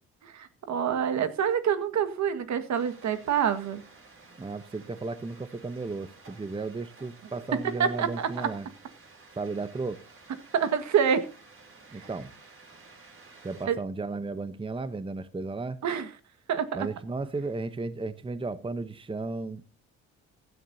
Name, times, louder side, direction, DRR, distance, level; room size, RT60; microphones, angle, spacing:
voice 1, 0.2-3.8 7.8-8.5 10.5-11.2 13.7-13.8 15.8-16.1 16.5-16.9, right 8 dB, 65° right, 1.8 m, -26 dB
sound 1, 2.7-13.7, right 3 dB, 45° right, 7.0 m, -53 dB
voice 2, 4.4-8.7 9.4-10.0 11.9-12.3 13.4-15.8 16.7-19.6, right 3 dB, 15° right, 0.9 m, -34 dB
16.0 x 13.0 x 2.8 m
cardioid pair, 90°, 30 cm